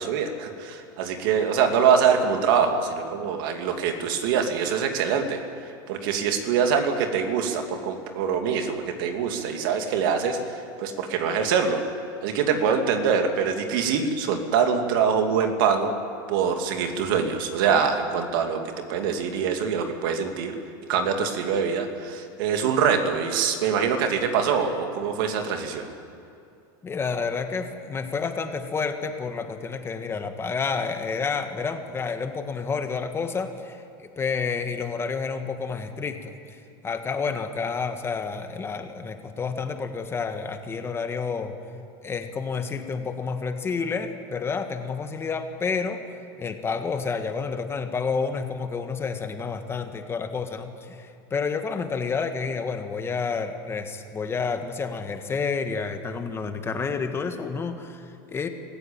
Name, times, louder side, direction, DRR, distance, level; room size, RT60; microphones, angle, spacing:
voice 1, 0.0-5.4 5.9-10.6 10.8-11.8 12.2-15.9 16.3-18.6 18.9-20.5 20.9-25.9, right 6 dB, 70° right, 5 dB, 2.8 m, -24 dB
voice 2, 26.8-36.6 36.8-41.5 42.0-46.0 46.4-58.5, left 5 dB, 20° left, 7 dB, 1.7 m, -29 dB
24.5 x 15.0 x 9.0 m, 2.6 s
supercardioid pair, 130°, 12 cm